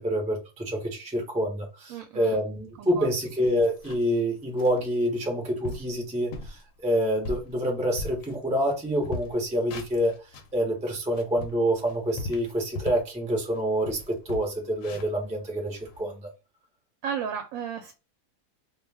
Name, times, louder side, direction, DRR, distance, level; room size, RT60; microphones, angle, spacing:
voice 1, 0.0-10.1 10.5-16.3, equal, 10° right, 0.4 m, -27 dB
voice 2, 1.9-2.4 2.8-3.1 17.0-17.9, right 7 dB, 70° right, 0.9 m, -33 dB
sound 1, 2.9-3.0 3.4-4.2 4.6-4.8 5.3-5.4 5.6-5.9 6.3-6.6 7.0-8.7 9.0-10.6 11.0-13.1 13.5-13.6 13.8-16.0, left 3 dB, 70° left, 0.9 m, -38 dB
2.3 x 2.3 x 3.2 m
omnidirectional pair, 1.6 m